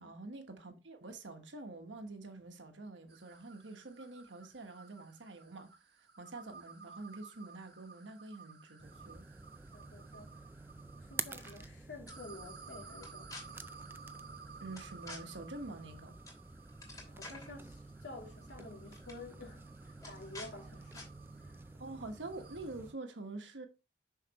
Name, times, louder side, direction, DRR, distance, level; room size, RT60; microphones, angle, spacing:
voice 1, 0.0-5.7 6.2-9.2 14.6-16.2 21.8-23.7, right 2 dB, 90° right, 1.3 m, -46 dB
sound 1, 3.1-11.7 12.1-22.9, right 5 dB, 60° right, 1.1 m, -56 dB
sound 2, 8.8-22.9, right 3 dB, 10° right, 0.3 m, -49 dB
voice 2, 9.7-10.5 11.0-13.6 17.1-21.1 21.4-21.6, left 2 dB, 70° left, 2.6 m, -51 dB
sound 3, 11.3-11.7 12.1-12.2 13.0-13.4 14.8-15.2 16.3-16.4 16.7-17.5 18.5-18.6 18.9-19.2 20.0-20.5 20.9-21.1, left 2 dB, 20° left, 2.7 m, -49 dB
6.6 x 5.8 x 3.0 m
head